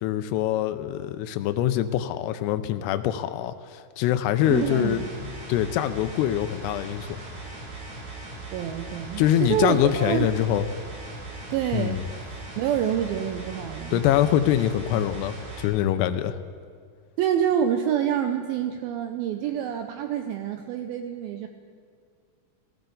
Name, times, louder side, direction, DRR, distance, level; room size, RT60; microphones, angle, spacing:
voice 1, 0.0-7.2 9.2-10.6 11.7-12.0 13.9-16.4, left 11 dB, 85° left, 9 dB, 2.6 m, -24 dB
sound 1, 4.4-15.7, right 2 dB, 65° right, 3.9 m, -39 dB
voice 2, 4.5-5.0 8.5-10.3 11.5-12.0 12.6-14.0 17.2-21.5, right 9 dB, 85° right, 6 dB, 2.1 m, -27 dB
15.5 x 15.5 x 3.9 m, 2.2 s
omnidirectional pair, 4.8 m